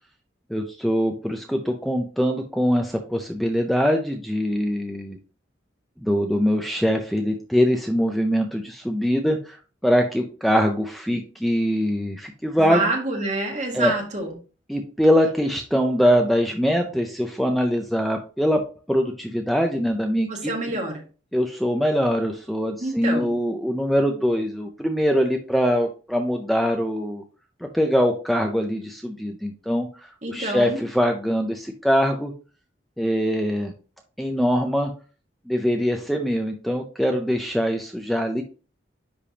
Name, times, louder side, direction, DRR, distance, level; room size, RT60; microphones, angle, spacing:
voice 1, 0.5-5.2 6.0-12.9 13.7-13.9 14.7-18.6 18.9-20.5 21.3-27.2 27.6-32.3 33.0-33.7 34.2-34.9 35.5-38.4, equal, ahead, 3 dB, 0.4 m, -23 dB
voice 2, 12.5-14.3 20.3-21.0 22.8-23.3 30.2-30.8, right 2 dB, 40° right, 1 dB, 1.5 m, -27 dB
10.0 x 3.4 x 2.8 m, 0.37 s
head